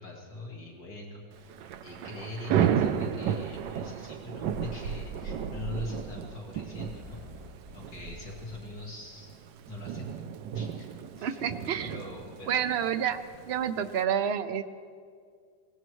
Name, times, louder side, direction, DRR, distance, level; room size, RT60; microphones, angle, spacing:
voice 1, 0.0-7.2 7.7-9.3 9.7-10.9 11.2-11.5 11.8-12.6, left 2 dB, 65° left, -2 dB, 2.4 m, -42 dB
Thunder / Rain, 1.4-14.0, right 8 dB, 85° right, 1.3 m, -33 dB
Purr, 2.6-8.5, left 1 dB, 40° right, 3.4 m, -54 dB
voice 2, 11.2-11.9 12.5-14.6, right 8 dB, 60° right, 9 dB, 0.7 m, -29 dB
23.5 x 19.0 x 3.1 m, 2.2 s
omnidirectional pair, 1.8 m